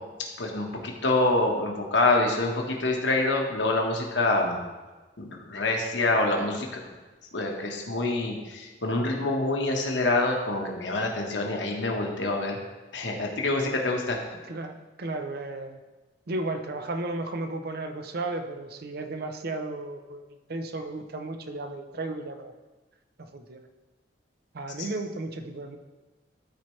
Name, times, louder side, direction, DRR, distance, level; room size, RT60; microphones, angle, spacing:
voice 1, 0.4-4.6 5.2-6.7 7.3-12.6 12.9-14.2, left 2 dB, 80° left, 1 dB, 1.3 m, -26 dB
voice 2, 14.4-15.8 16.3-22.5 23.2-23.7 24.5-25.8, right 2 dB, 60° right, 7 dB, 0.6 m, -34 dB
12.5 x 4.4 x 3.2 m, 1.2 s
head